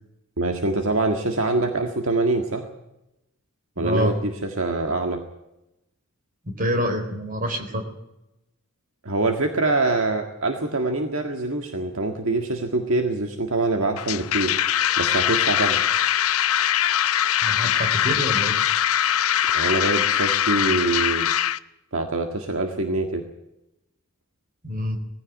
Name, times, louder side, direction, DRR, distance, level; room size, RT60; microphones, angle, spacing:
voice 1, 0.4-2.7 3.8-5.2 9.0-14.6 15.0-15.8 19.5-21.3 21.9-23.2, right 2 dB, 60° right, 4 dB, 1.8 m, -24 dB
voice 2, 3.8-4.2 6.5-7.8 17.4-18.6 24.6-25.0, equal, 40° right, 6 dB, 3.9 m, -26 dB
sound 1, 14.0-21.6, left 10 dB, 70° left, 0.7 m, -22 dB
20.0 x 15.5 x 9.3 m, 0.90 s
head